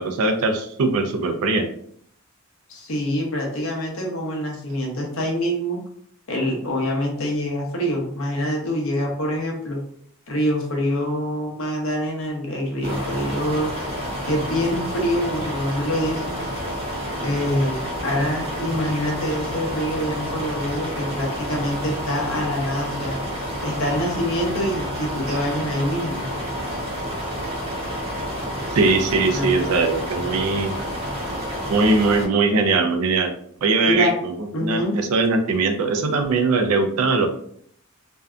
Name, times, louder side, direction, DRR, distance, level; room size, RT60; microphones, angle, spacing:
voice 1, 0.0-1.7 25.3-25.4 28.7-30.7 31.7-33.3 33.6-34.3 34.6-37.3, right 3 dB, 85° right, 5 dB, 0.4 m, -20 dB
voice 2, 2.7-5.8 6.3-9.8 10.3-13.7 14.3-16.4 17.2-23.2 23.6-26.3 29.3-29.6 33.9-34.1 34.5-35.0, equal, 65° left, 0 dB, 0.7 m, -25 dB
sound 1, 12.8-32.2, equal, 30° right, 0.7 m, -29 dB
2.6 x 2.2 x 2.3 m, 0.65 s
head